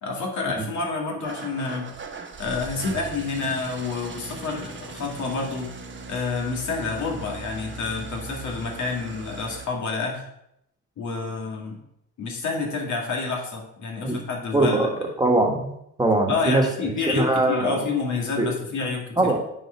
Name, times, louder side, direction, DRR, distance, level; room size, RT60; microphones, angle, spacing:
voice 1, 0.0-1.9 2.4-5.7 6.1-10.2 11.0-11.8 12.2-14.9 16.3-19.4, left 4 dB, 70° left, 0 dB, 2.2 m, -28 dB
Engine starting / Idling, 1.2-9.7, right 4 dB, 40° right, 1.2 m, -39 dB
voice 2, 14.5-14.9 15.2-16.6 17.1-17.8 18.4-18.5 19.2-19.4, right 2 dB, 15° right, 1 dB, 1.5 m, -21 dB
9.0 x 4.8 x 4.5 m, 0.78 s
cardioid pair, 90°, 30 cm